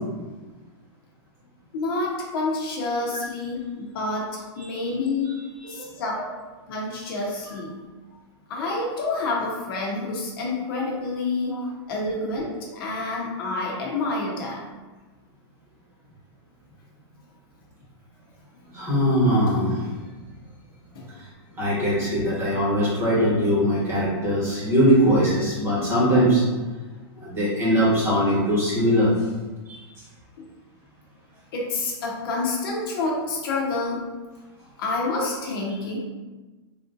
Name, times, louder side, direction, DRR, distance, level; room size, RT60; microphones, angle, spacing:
voice 1, 1.7-5.3 5.7-6.2 6.7-7.7 8.5-11.5 11.9-14.6 20.9-21.0 21.5-21.6 31.5-34.0 34.8-36.0, left 3 dB, 55° left, -2 dB, 0.8 m, -28 dB
voice 2, 5.3-6.1 11.5-11.6 12.0-12.1 18.7-19.9 21.1-21.3 21.6-26.4 27.2-29.1 29.7-29.8, equal, 20° right, -7 dB, 1.1 m, -22 dB
3.5 x 2.5 x 2.6 m, 1.2 s
hypercardioid pair, 150°, 14 cm